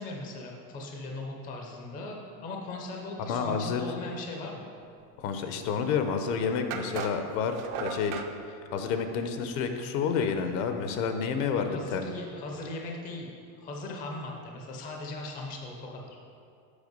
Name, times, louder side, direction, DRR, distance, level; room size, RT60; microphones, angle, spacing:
voice 1, 0.0-4.7 11.7-16.1, left 2 dB, 20° left, 0 dB, 0.5 m, -39 dB
voice 2, 3.3-3.8 5.2-12.1, left 6 dB, 55° left, 7 dB, 0.8 m, -30 dB
sound 1, 6.7-8.3, right 6 dB, 45° right, 0.6 m, -36 dB
8.2 x 5.6 x 5.3 m, 2.5 s
cardioid pair, 170°, 49 cm